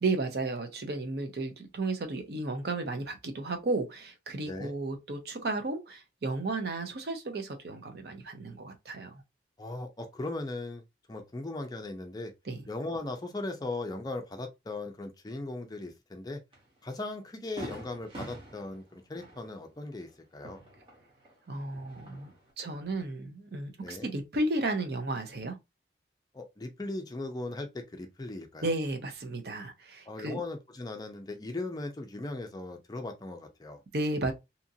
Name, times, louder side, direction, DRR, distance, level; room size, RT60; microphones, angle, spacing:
voice 1, 0.0-9.2 12.5-12.6 21.5-22.3 22.6-25.6 28.6-30.4 33.9-34.3, right 2 dB, 60° right, 0.6 m, -33 dB
voice 2, 9.6-10.8 11.1-12.3 12.7-16.4 16.8-20.6 23.8-24.1 26.3-28.7 30.1-33.8, left 2 dB, 20° left, 0.4 m, -38 dB
Fireworks, 16.5-16.7 17.1-17.2 17.6-21.3 21.6-22.5, right 1 dB, 30° right, 1.0 m, -46 dB
2.8 x 2.4 x 2.7 m
head